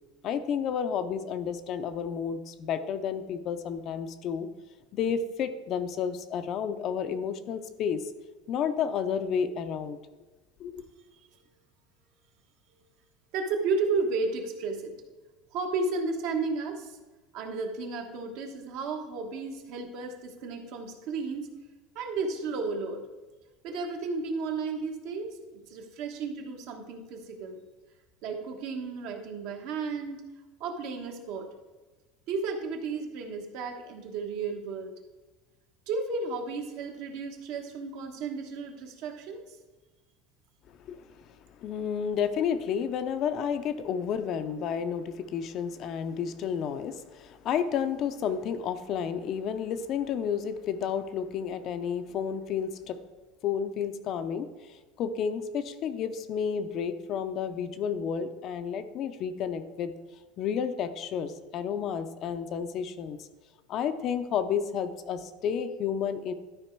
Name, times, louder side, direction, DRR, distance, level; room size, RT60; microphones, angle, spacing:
voice 1, 0.2-4.5 4.9-8.0 8.5-10.0 10.6-10.9 40.8-41.2 41.6-53.0 53.4-59.9 60.4-63.3 63.7-66.3, left 7 dB, 40° left, 10 dB, 0.5 m, -31 dB
voice 2, 13.3-14.9 15.5-17.0 17.3-21.5 21.9-23.0 23.6-27.6 28.2-30.2 30.6-31.5 32.3-34.9 35.9-39.4, right 4 dB, 55° right, 4 dB, 1.3 m, -33 dB
12.0 x 5.0 x 4.6 m, 1.2 s
cardioid pair, 160°, 0 cm